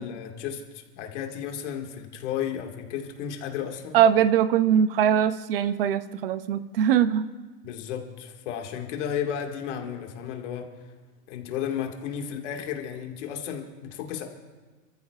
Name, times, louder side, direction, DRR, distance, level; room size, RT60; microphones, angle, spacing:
voice 1, 0.0-4.0 7.6-10.7 11.3-14.2, left 8 dB, 50° left, 3 dB, 1.9 m, -33 dB
voice 2, 3.9-7.3, right 9 dB, 40° right, 14 dB, 0.5 m, -21 dB
29.5 x 14.0 x 2.4 m, 1.3 s
supercardioid pair, 175°, 47 cm